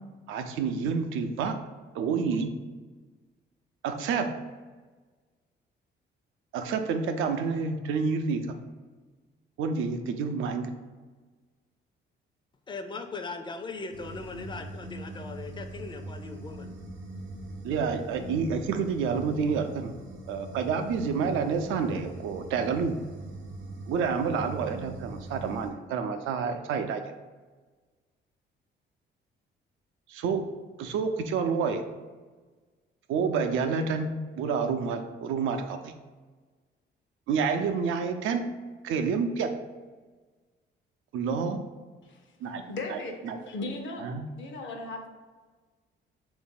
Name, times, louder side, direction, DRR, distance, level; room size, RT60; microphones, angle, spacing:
voice 1, 0.3-1.5 1.9-2.5 3.8-4.3 6.5-8.6 9.6-10.7 17.6-19.9 20.3-23.0 23.9-27.0 30.1-30.4 30.8-31.8 33.1-34.1 34.4-35.9 37.3-38.4 38.8-39.5 41.1-41.6 42.4-42.6 42.9-43.4 44.0-44.2, right 5 dB, 85° right, 7 dB, 0.4 m, -28 dB
voice 2, 12.7-16.7, left 3 dB, 25° left, 7 dB, 0.4 m, -39 dB
sound 1, 13.9-25.7, right 1 dB, 70° right, 0.9 m, -42 dB
voice 3, 42.7-43.2 43.5-45.1, left 2 dB, 70° left, 3 dB, 0.8 m, -37 dB
3.5 x 2.6 x 3.8 m, 1.3 s
cardioid pair, 90°, 20 cm